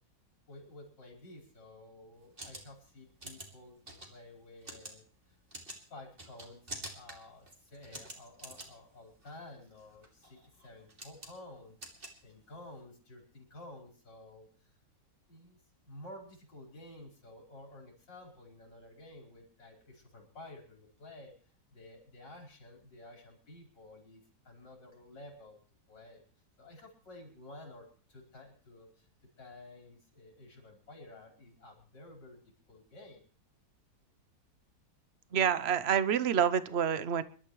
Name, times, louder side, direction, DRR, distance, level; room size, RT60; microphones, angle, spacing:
voice 1, 0.5-5.1 5.9-14.7 15.3-15.6 15.8-25.6 25.9-26.2 26.6-29.1 29.4-33.2, left 2 dB, 85° left, 1 dB, 5.4 m, -52 dB
sound 1, 2.1-12.8, right 1 dB, 30° right, 3.0 m, -49 dB
voice 2, 35.3-37.2, right 8 dB, 50° right, 14 dB, 0.9 m, -27 dB
26.5 x 12.0 x 3.2 m, 0.43 s
omnidirectional pair, 1.9 m